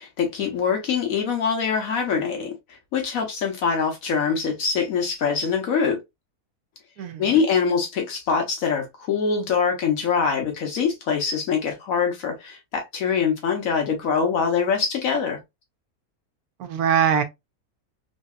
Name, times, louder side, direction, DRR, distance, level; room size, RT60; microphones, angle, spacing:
voice 1, 0.0-6.0 7.2-15.4, left 6 dB, 70° left, 1.1 m, -24 dB
voice 2, 7.0-7.4 16.6-17.2, right 8 dB, 90° right, 1.2 m, -22 dB
3.2 x 2.7 x 2.2 m
omnidirectional pair, 1.6 m